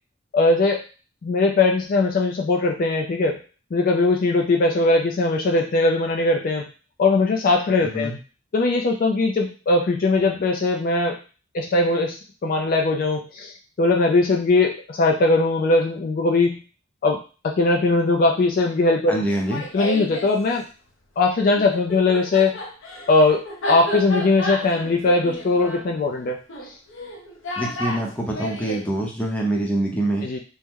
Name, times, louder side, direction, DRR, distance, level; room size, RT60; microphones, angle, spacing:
voice 1, 0.3-0.8 1.2-3.4 3.7-6.6 7.0-8.1 8.5-11.2 11.5-13.5 13.8-16.6 17.0-19.2 19.7-20.7 21.2-22.6 23.1-26.4 26.6-26.7 30.2-30.4, left 3 dB, 45° left, 1 dB, 0.3 m, -20 dB
voice 2, 7.8-8.2 19.1-19.6 27.6-30.3, right 1 dB, 5° left, -2 dB, 0.7 m, -25 dB
Laughter, 19.3-20.3 21.6-28.9, equal, 85° left, 0.7 m, -31 dB
2.9 x 2.1 x 3.6 m, 0.35 s
head